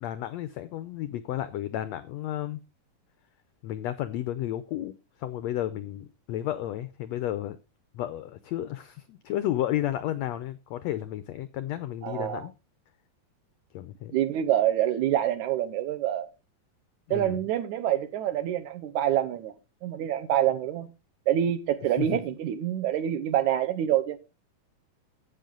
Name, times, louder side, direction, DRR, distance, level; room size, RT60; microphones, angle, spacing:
voice 1, 0.0-2.6 3.6-7.6 7.9-12.5 13.7-14.1 17.1-17.4 22.0-22.2, left 13 dB, 85° left, 1.5 m, -32 dB
voice 2, 12.0-12.5 14.1-16.3 17.1-19.5 19.8-20.9 21.3-24.2, right 11 dB, 70° right, 2.1 m, -26 dB
12.5 x 8.4 x 3.8 m
omnidirectional pair, 3.9 m